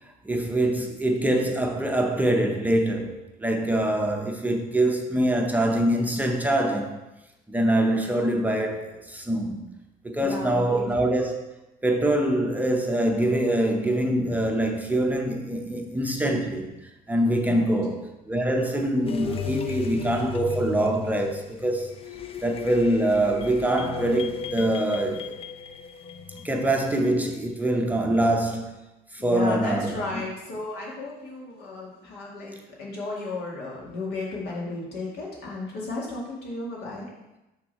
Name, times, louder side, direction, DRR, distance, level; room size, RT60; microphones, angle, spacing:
voice 1, 0.2-7.0 7.5-9.7 10.0-11.5 11.8-21.9 22.4-25.4 26.3-28.7 29.1-30.2, right 1 dB, 10° right, 0.6 m, -24 dB
voice 2, 10.2-10.9 17.5-17.8 29.2-37.1, left 3 dB, 75° left, 2.0 m, -34 dB
sound 1, 19.1-27.1, left 6 dB, 35° left, 0.5 m, -35 dB
6.0 x 3.6 x 5.4 m
cardioid pair, 110°, 17 cm